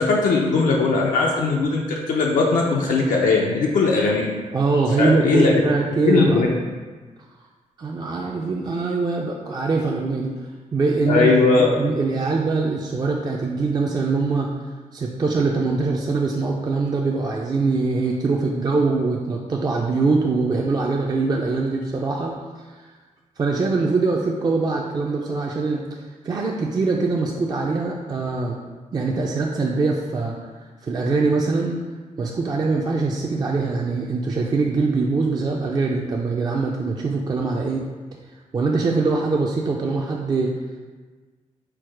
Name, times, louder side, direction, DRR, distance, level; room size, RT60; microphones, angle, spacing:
voice 1, 0.0-4.3 5.0-5.6 6.0-6.5 11.1-11.7, left 4 dB, 80° left, -1 dB, 0.5 m, -19 dB
voice 2, 4.5-6.4 7.8-10.3 10.7-14.5 14.9-22.9 23.4-28.6 28.9-30.4 30.8-31.8 32.2-37.8 38.5-40.6, right 3 dB, 30° right, -1 dB, 0.3 m, -23 dB
4.6 x 2.1 x 4.4 m, 1.4 s
cardioid pair, 105°, 13 cm